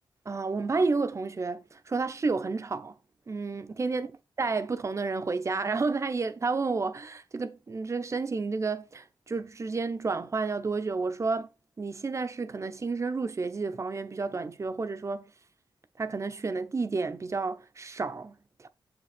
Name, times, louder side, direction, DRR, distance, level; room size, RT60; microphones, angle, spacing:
voice 1, 0.3-2.9 3.3-4.1 4.4-11.5 11.8-15.3 16.0-18.7, right 4 dB, 35° right, 0.8 m, -31 dB
7.4 x 5.9 x 4.3 m
wide cardioid pair, 115°, 8 cm